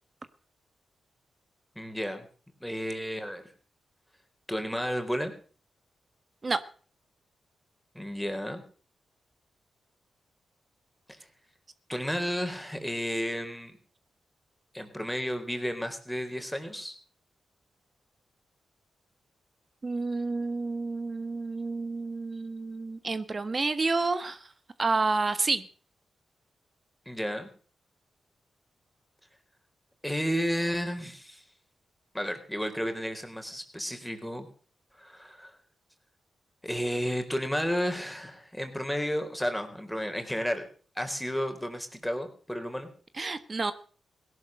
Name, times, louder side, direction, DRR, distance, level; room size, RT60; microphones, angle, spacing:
voice 1, 1.8-2.3 2.6-3.4 4.5-5.3 7.9-8.6 11.1-11.2 11.9-13.8 14.7-17.0 27.1-27.5 30.0-31.4 32.1-34.5 35.0-35.6 36.6-40.7 41.0-42.9, equal, 5° left, 6 dB, 4.1 m, -32 dB
voice 2, 19.8-24.5 24.8-25.7 43.2-43.7, right 3 dB, 45° right, 12 dB, 1.4 m, -29 dB
17.5 x 11.0 x 6.6 m, 0.43 s
supercardioid pair, 45°, 0 cm